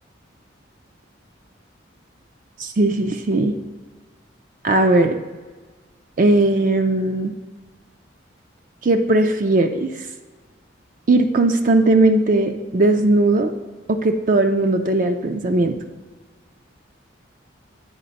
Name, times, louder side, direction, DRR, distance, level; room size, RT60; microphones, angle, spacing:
voice 1, 2.6-3.5 4.6-5.2 6.2-7.3 8.8-9.9 11.1-13.5 13.9-15.8, right 2 dB, 45° right, 5 dB, 0.4 m, -18 dB
8.7 x 4.2 x 3.9 m, 1.4 s
head